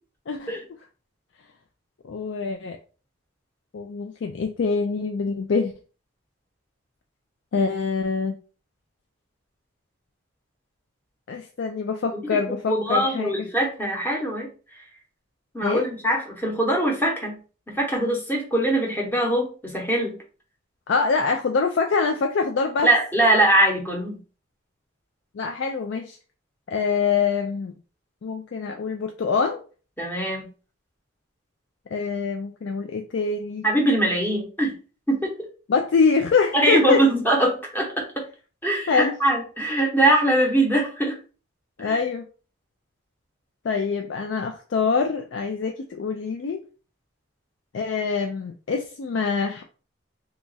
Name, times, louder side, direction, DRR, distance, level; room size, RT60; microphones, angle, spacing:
voice 1, 2.0-2.8 3.7-5.7 7.5-8.4 11.3-13.3 15.6-15.8 20.9-22.9 25.3-26.2 26.7-27.7 28.2-29.6 31.9-33.7 35.7-37.0 38.9-39.1 41.8-42.2 43.6-46.6 47.7-49.6, left 5 dB, 60° left, 4 dB, 0.3 m, -24 dB
voice 2, 12.7-14.5 15.5-17.4 17.7-20.2 22.8-24.2 30.0-30.5 33.6-34.7 35.1-35.3 36.5-38.2 38.6-41.2 41.8-42.0, right 1 dB, 10° left, 0 dB, 0.8 m, -22 dB
3.0 x 2.4 x 3.9 m, 0.37 s
head